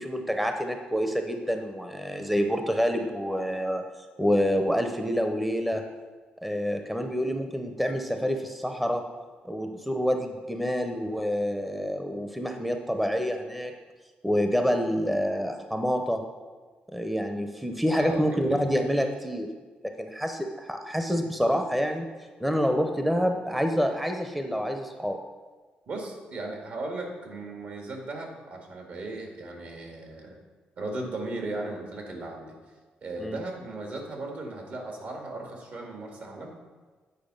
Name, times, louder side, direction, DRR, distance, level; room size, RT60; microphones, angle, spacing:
voice 1, 0.0-3.9 4.2-5.8 6.4-9.0 9.4-13.7 14.2-16.2 16.9-19.5 20.0-22.1 22.4-25.2 33.2-33.4, equal, 5° right, 5 dB, 0.6 m, -27 dB
voice 2, 18.0-18.7 25.9-30.4 30.8-32.6 33.0-36.5, right 2 dB, 65° right, 2 dB, 1.8 m, -36 dB
9.1 x 4.7 x 5.3 m, 1.4 s
cardioid pair, 95°, 3 cm